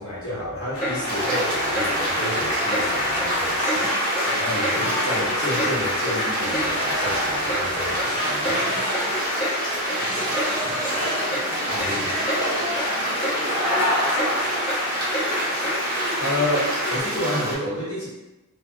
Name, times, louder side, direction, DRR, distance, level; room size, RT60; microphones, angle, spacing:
voice 1, 0.0-3.9 4.4-8.5 11.7-12.1 16.2-18.1, left 1 dB, 65° left, -8 dB, 1.1 m, -30 dB
sound 1, 0.7-17.0, left 1 dB, 90° left, 1.1 m, -27 dB
Clock, 0.8-1.0 1.3-1.4 1.7-1.9 2.2-2.4 2.7-2.8 3.2-3.3 3.6-3.8 4.1-4.3 4.6-4.8 5.1-5.7 6.0-6.1 6.5-6.7 7.0-7.2 7.5-7.6 8.0-8.1 8.4-8.6 8.9-9.1 9.4-9.5 9.9-10.0 10.3-10.5 10.8-10.9 11.3-11.4 11.8-11.9 12.3-12.4 12.7-12.9 13.2-13.4 13.7-13.8 14.2-14.3 14.7-14.8 15.1-15.3 15.6-15.8, equal, 40° left, 1.0 m, -29 dB
Stream, 1.1-17.6, right 1 dB, 40° right, 0.7 m, -28 dB
voice 2, 9.8-12.9 13.2-14.2, right 2 dB, 70° right, 0 dB, 0.5 m, -42 dB
2.4 x 2.3 x 2.4 m, 1.0 s
head